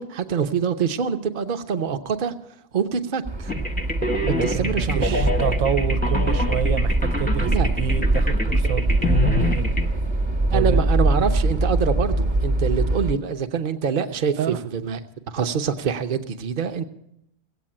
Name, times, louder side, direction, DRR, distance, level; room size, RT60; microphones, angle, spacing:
voice 1, 0.0-2.3 2.7-3.5 4.2-5.2 7.4-7.7 10.5-15.0 15.3-16.8, right 7 dB, 45° right, 8 dB, 0.7 m, -25 dB
sound 1, 3.2-13.1, right 2 dB, 20° right, 1.0 m, -22 dB
sound 2, 3.5-9.9, left 2 dB, 10° left, 0.7 m, -27 dB
voice 2, 4.3-9.7 10.5-10.9 11.2-11.3 14.4-14.6, right 8 dB, 70° right, 14 dB, 1.1 m, -29 dB
16.5 x 8.3 x 8.7 m, 0.79 s
omnidirectional pair, 1.6 m